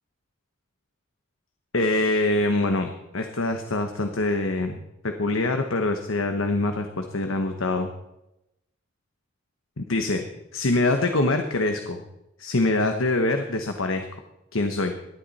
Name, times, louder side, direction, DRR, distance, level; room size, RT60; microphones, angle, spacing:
voice 1, 1.7-7.9 9.8-10.2 10.5-12.0 12.4-14.1 14.5-14.9, left 2 dB, 85° left, 5 dB, 1.2 m, -24 dB
19.5 x 12.0 x 4.2 m, 0.91 s
head